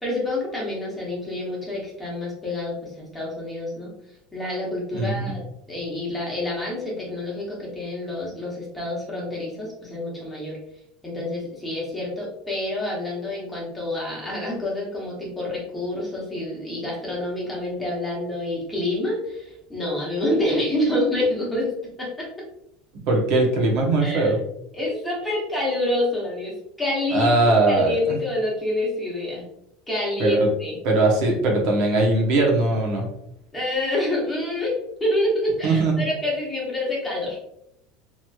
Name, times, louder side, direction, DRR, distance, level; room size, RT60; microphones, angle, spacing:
voice 1, 0.0-3.9 4.3-10.6 11.0-21.7 22.0-22.3 24.0-24.3 24.7-27.3 27.7-29.4 29.9-30.8 33.5-37.4, left 1 dB, 5° left, -5 dB, 1.0 m, -27 dB
voice 2, 4.9-5.3 23.1-24.4 27.1-27.9 30.2-30.5 30.8-33.1 35.6-36.0, right 2 dB, 60° right, -1 dB, 0.8 m, -20 dB
3.0 x 2.9 x 2.3 m, 0.80 s
cardioid pair, 155°, 0 cm